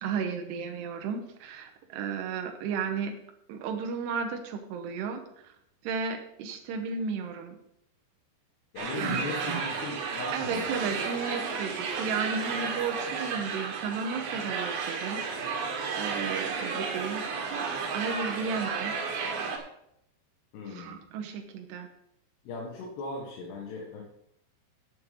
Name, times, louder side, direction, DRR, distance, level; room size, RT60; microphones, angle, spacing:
voice 1, 0.0-3.1 3.5-5.2 5.8-7.6 8.9-9.6 10.3-17.2 17.9-19.0 20.7-21.9, right 6 dB, 90° right, 5 dB, 3.1 m, -34 dB
voice 2, 8.7-10.6 20.5-21.0 22.4-24.0, left 3 dB, 80° left, -1 dB, 3.7 m, -38 dB
sound 1, 8.8-19.6, right 5 dB, 70° right, 3.4 m, -33 dB
10.5 x 7.7 x 5.2 m, 0.76 s
omnidirectional pair, 4.8 m